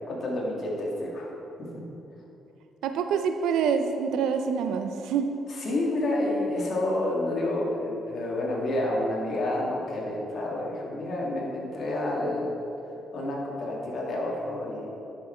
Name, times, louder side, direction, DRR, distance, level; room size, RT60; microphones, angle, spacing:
voice 1, 0.1-1.3 1.7-1.8 5.5-12.6 13.1-14.9, left 1 dB, 55° left, -3 dB, 2.2 m, -29 dB
voice 2, 2.8-5.3, right 6 dB, 85° right, 7 dB, 0.7 m, -26 dB
10.0 x 6.9 x 4.5 m, 3.0 s
cardioid pair, 90°, 0 cm